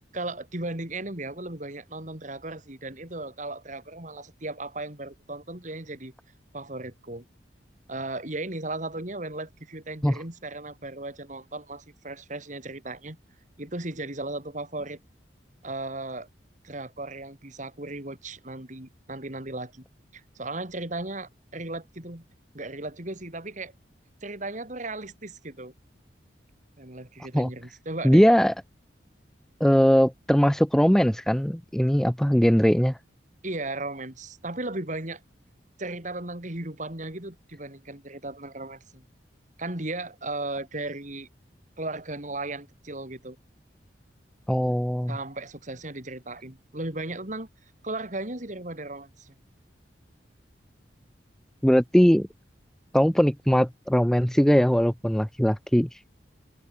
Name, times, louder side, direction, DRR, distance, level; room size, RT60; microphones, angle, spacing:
voice 1, 0.1-6.1 6.5-7.2 7.9-13.2 13.6-15.0 15.6-16.3 16.6-19.9 20.1-22.2 22.5-23.7 24.2-25.7 26.8-28.3 33.4-35.2 35.8-39.0 39.6-41.3 41.8-43.4 45.1-47.5 47.8-49.3, right 2 dB, 45° right, 3.3 m, -36 dB
voice 2, 28.0-28.5 29.6-33.0 44.5-45.2 51.6-52.3 52.9-55.9, equal, 5° left, 0.5 m, -20 dB
head